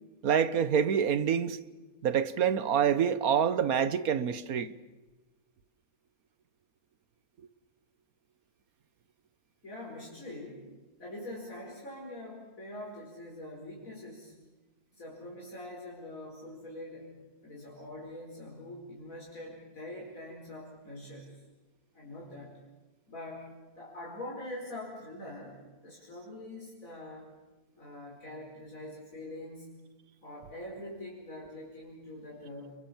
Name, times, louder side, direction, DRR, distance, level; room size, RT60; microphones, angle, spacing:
voice 1, 0.2-1.6 2.0-4.7, right 8 dB, 80° right, 1.5 m, -26 dB
voice 2, 9.6-10.7 11.0-14.3 14.9-17.1 17.4-21.4 21.9-22.5 23.1-23.5 23.8-27.3 27.8-29.7 30.2-32.8, left 1 dB, 65° left, 5.3 m, -44 dB
29.5 x 23.0 x 7.2 m
omnidirectional pair, 1.5 m